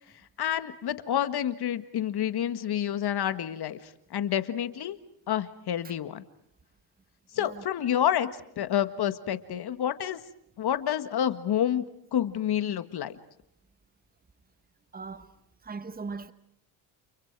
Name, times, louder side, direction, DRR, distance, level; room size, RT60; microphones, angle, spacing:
voice 1, 0.4-3.8 4.1-5.0 5.3-6.2 7.3-8.3 8.6-10.2 10.6-11.8 12.1-13.2, left 10 dB, 50° left, 1.7 m, -28 dB
voice 2, 14.9-15.3 15.6-16.3, right 4 dB, 15° right, 1.3 m, -39 dB
30.0 x 29.5 x 4.7 m
supercardioid pair, 75°, 50 cm